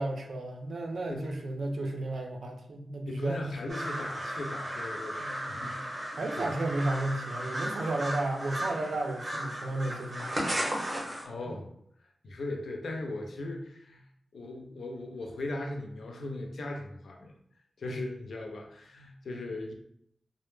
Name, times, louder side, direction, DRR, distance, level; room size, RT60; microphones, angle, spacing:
voice 1, 0.0-3.8 6.2-10.5 11.5-11.6, right 2 dB, 75° right, 2 dB, 0.4 m, -33 dB
voice 2, 3.1-6.0 6.4-6.5 11.2-11.7 12.2-14.0 14.3-17.3 17.8-19.7, left 2 dB, 85° left, 1 dB, 0.4 m, -38 dB
sound 1, 3.7-11.3, right 1 dB, 35° right, 0.7 m, -35 dB
2.0 x 2.0 x 3.1 m, 0.71 s
wide cardioid pair, 90°, 0 cm